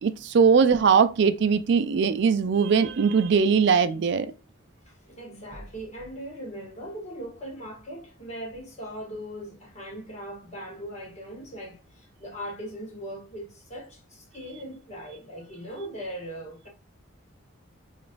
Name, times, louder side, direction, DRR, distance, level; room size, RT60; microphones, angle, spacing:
voice 1, 0.0-4.3, right 6 dB, 55° right, 0.3 m, -21 dB
voice 2, 4.9-16.7, equal, 30° left, 1.0 m, -39 dB
5.0 x 2.4 x 2.5 m
head